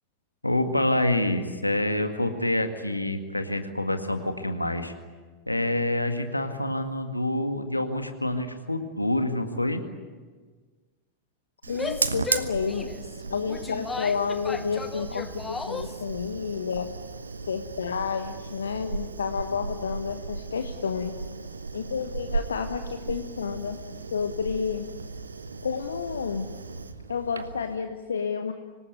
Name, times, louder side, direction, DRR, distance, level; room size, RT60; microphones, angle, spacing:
voice 1, 0.4-4.9 5.5-9.8, left 1 dB, 85° left, 7 dB, 1.9 m, -27 dB
Fire, 11.6-27.7, right 4 dB, 75° right, 1.1 m, -36 dB
voice 2, 11.7-12.9 13.3-16.9 17.5-21.2 21.7-23.8 24.1-24.8 25.6-26.5 27.1-28.5, left 6 dB, 70° left, 8 dB, 1.2 m, -30 dB
Female speech woman speaking / Yell, 11.7-16.0, left 4 dB, 15° left, 1.2 m, -36 dB
26.0 x 19.5 x 9.4 m, 1.5 s
figure-of-eight pair, 90°, 0 cm